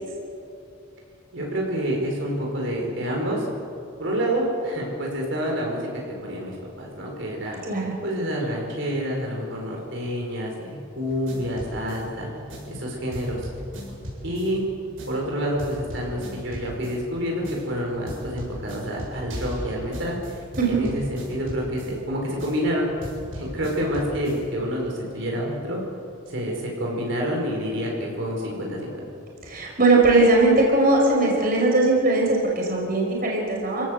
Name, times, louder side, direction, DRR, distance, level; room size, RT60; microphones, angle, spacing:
voice 1, 1.3-3.4 4.0-5.9 6.2-7.6 8.0-12.3 12.7-13.5 14.2-14.6 15.1-22.9 23.3-25.8 26.3-28.9, equal, 65° right, -1 dB, 4.7 m, -28 dB
sound 1, 11.1-24.7, equal, 80° right, 7.7 m, -38 dB
voice 2, 29.4-33.8, right 2 dB, 45° right, -1 dB, 5.4 m, -19 dB
28.5 x 17.5 x 7.8 m, 2.6 s
head